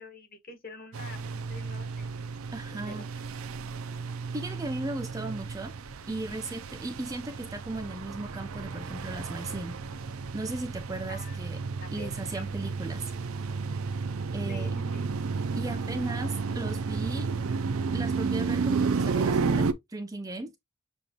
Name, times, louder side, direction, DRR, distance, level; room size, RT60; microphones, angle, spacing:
voice 1, 0.0-2.1 2.7-3.1 6.3-6.5 11.1-11.4 11.8-12.4 14.5-15.0, left 2 dB, 45° left, 1.4 m, -47 dB
sound 1, 0.9-19.7, right 4 dB, 90° right, 0.5 m, -32 dB
voice 2, 2.5-3.1 4.3-5.7 6.1-9.8 10.3-11.6 11.9-13.0 14.3-14.9 15.6-17.3 17.9-20.5, right 2 dB, 15° right, 0.4 m, -36 dB
6.9 x 2.5 x 2.9 m
head